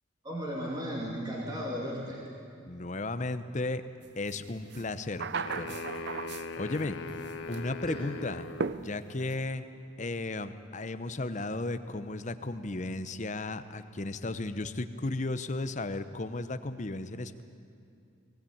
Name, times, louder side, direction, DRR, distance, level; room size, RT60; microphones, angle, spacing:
voice 1, 0.2-2.2 7.0-7.1 7.8-8.1, equal, 20° right, -4 dB, 2.7 m, -35 dB
voice 2, 2.7-3.8 4.2-5.8 6.6-7.0 7.5-8.5 8.8-9.6 10.0-17.4, left 2 dB, 40° left, 11 dB, 0.8 m, -34 dB
sound 1, 4.3-4.4 4.7-6.8 7.1-7.7 8.6-9.4, right 5 dB, 60° right, 0.5 m, -36 dB
sound 2, 5.4-8.8, left 3 dB, 85° left, 1.0 m, -40 dB
20.0 x 17.0 x 8.7 m, 2.5 s
head